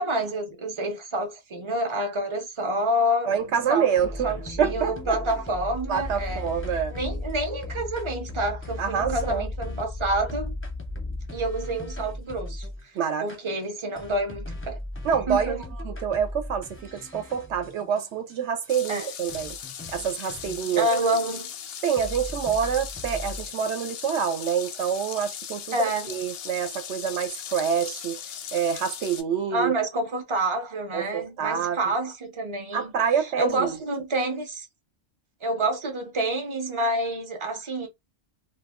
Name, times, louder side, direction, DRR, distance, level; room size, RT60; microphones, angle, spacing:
voice 1, 0.0-3.3 3.7-3.9 4.2-6.5 6.9-10.5 11.3-12.9 13.2-14.8 15.3-15.6 18.9-19.1 20.7-21.5 25.7-26.2 29.5-32.9 33.4-34.7 35.4-37.9, right 1 dB, 35° right, 0.5 m, -28 dB
voice 2, 3.3-5.2 5.9-6.9 8.8-9.5 12.9-13.3 15.0-15.6 15.8-19.6 19.9-20.9 21.8-25.8 26.1-28.2 28.5-29.9 30.9-31.8 32.7-33.8, right 7 dB, 70° right, 0.8 m, -27 dB
sound 1, 4.0-12.8 13.3-13.4 13.9-18.4 18.6-18.7 19.0-19.1 19.3-21.7 22.0-23.7, left 2 dB, 15° left, 0.5 m, -36 dB
sound 2, 18.7-29.2, left 8 dB, 65° left, 0.6 m, -38 dB
2.3 x 2.2 x 3.5 m
omnidirectional pair, 1.3 m